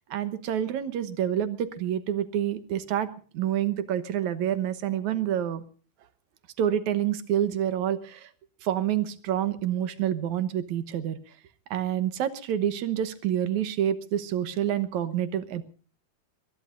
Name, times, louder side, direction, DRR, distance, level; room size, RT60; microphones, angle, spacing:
voice 1, 0.1-5.6 6.6-8.3 8.6-11.2 11.7-15.6, right 10 dB, 70° right, 13 dB, 2.4 m, -28 dB
22.0 x 21.5 x 2.6 m, 0.39 s
omnidirectional pair, 3.5 m